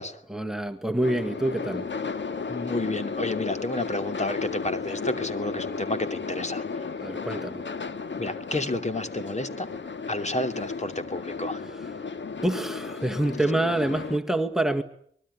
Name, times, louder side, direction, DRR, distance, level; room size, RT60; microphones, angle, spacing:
voice 1, 0.3-1.9 7.0-7.7 11.7-12.1 12.4-14.8, right 1 dB, ahead, 10 dB, 1.9 m, -27 dB
sound 1, 1.0-14.2, left 5 dB, 65° left, 1.9 m, -34 dB
voice 2, 2.5-6.9 8.2-9.7 10.1-11.6, left 2 dB, 35° left, 8 dB, 2.8 m, -31 dB
24.0 x 21.0 x 9.8 m, 0.65 s
cardioid pair, 55°, 21 cm